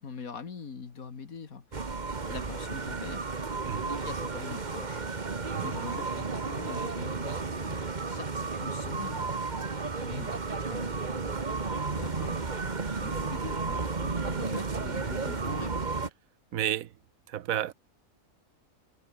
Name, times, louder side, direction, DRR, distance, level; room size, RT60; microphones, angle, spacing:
voice 1, 0.0-1.6 2.2-3.3 3.8-5.1 5.6-9.3 10.0-11.2 11.6-12.5 12.8-15.9, left 5 dB, 85° left, 2.4 m, -43 dB
sound 1, 1.7-16.1, right 4 dB, 35° right, 1.5 m, -33 dB
voice 2, 16.5-16.9 17.3-17.7, right 11 dB, 80° right, 1.2 m, -31 dB
omnidirectional pair, 1.5 m